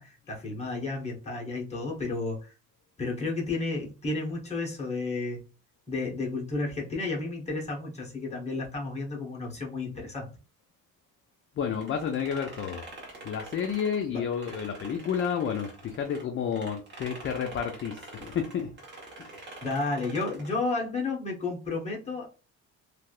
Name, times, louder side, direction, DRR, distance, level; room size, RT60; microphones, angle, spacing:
voice 1, 0.0-2.5 3.0-5.4 5.9-10.3 14.1-14.2 19.6-22.3, left 3 dB, 20° left, 1.2 m, -32 dB
voice 2, 11.6-12.9 13.2-18.7 19.2-19.3, left 7 dB, 35° left, 0.4 m, -31 dB
sound 1, 11.7-16.2 16.5-20.6, right 2 dB, 30° right, 1.3 m, -46 dB
3.3 x 2.7 x 2.4 m
cardioid pair, 130°, 35 cm